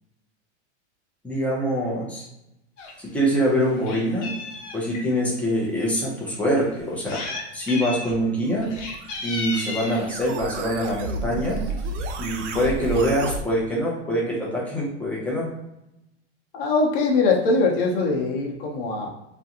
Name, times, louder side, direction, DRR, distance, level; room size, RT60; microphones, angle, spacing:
voice 1, 1.2-2.3 3.0-4.3 4.7-7.2 7.5-8.7 9.2-11.6 12.2-15.5, equal, 5° left, -5 dB, 0.5 m, -24 dB
Meow, 2.8-2.9 3.3-5.1 5.8-5.9 6.8-7.4 7.7-8.2 8.6-10.1 11.0-11.3 11.7-11.8 12.0-12.1 12.4-13.1, left 3 dB, 80° left, 0.8 m, -34 dB
sound 1, 8.5-13.4, right 3 dB, 75° right, 0.5 m, -32 dB
voice 2, 16.5-19.1, left 3 dB, 50° left, -1 dB, 0.8 m, -22 dB
2.5 x 2.2 x 2.8 m, 0.89 s
supercardioid pair, 140°, 36 cm